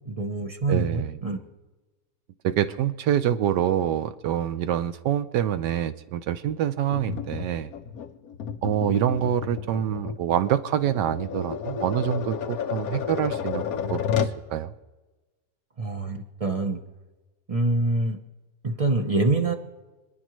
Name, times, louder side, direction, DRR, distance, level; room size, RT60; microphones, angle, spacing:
voice 1, 0.1-1.4 15.8-16.8 17.5-18.2 18.6-19.5, right 2 dB, 35° right, 4 dB, 0.6 m, -25 dB
voice 2, 0.7-1.2 2.4-7.7 8.6-14.7, right 10 dB, 80° right, 12 dB, 1.3 m, -26 dB
Tap, 6.9-14.4, left 7 dB, 65° left, 1.2 m, -31 dB
27.0 x 10.5 x 3.1 m, 1.2 s
omnidirectional pair, 1.9 m